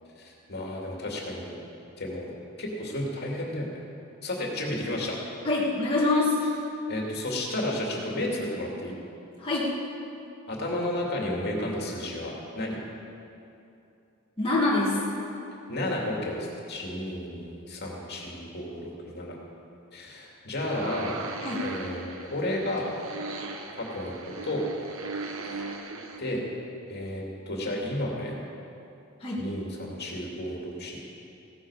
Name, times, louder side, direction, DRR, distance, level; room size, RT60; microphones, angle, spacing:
voice 1, 0.2-1.6 2.0-2.3 2.6-3.7 4.2-5.2 6.9-8.9 10.5-12.8 15.7-19.4 19.9-21.2 21.6-22.9 23.8-24.2 24.4-24.6 25.5-25.6 26.2-26.4 26.9-28.4 29.4-31.0, left 1 dB, 50° left, -2 dB, 2.5 m, -32 dB
voice 2, 5.4-6.4 9.4-9.7 14.4-15.0 21.4-21.7 29.2-29.5, left 2 dB, 25° left, -7 dB, 1.8 m, -25 dB
sound 1, 20.6-26.2, right 3 dB, 65° right, 1.1 m, -38 dB
16.5 x 13.0 x 4.9 m, 2.7 s
head